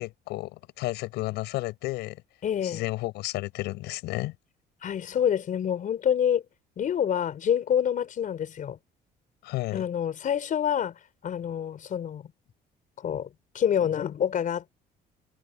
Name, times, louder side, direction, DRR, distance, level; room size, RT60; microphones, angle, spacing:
voice 1, 0.0-2.2 2.6-4.3 9.4-9.9, left 19 dB, 90° left, 6.1 m, -32 dB
voice 2, 2.4-2.8 4.8-6.4 6.8-8.8 9.7-10.9 11.2-12.3 13.0-13.3 13.5-14.7, left 9 dB, 50° left, 4.6 m, -27 dB
cardioid pair, 110°, 17 cm